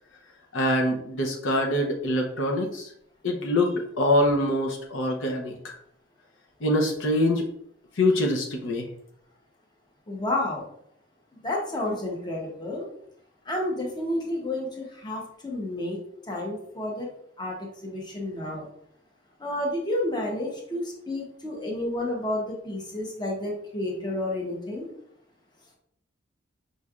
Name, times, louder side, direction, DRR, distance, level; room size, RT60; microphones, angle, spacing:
voice 1, 0.5-2.9 3.2-5.6 6.6-7.4 8.0-8.9, left 1 dB, 75° left, 1 dB, 0.7 m, -24 dB
voice 2, 10.1-10.7 11.4-12.8 13.5-16.0 16.3-17.1 17.4-18.7 19.4-24.9, left 1 dB, 20° left, -1 dB, 0.9 m, -30 dB
5.3 x 3.2 x 2.4 m, 0.70 s
head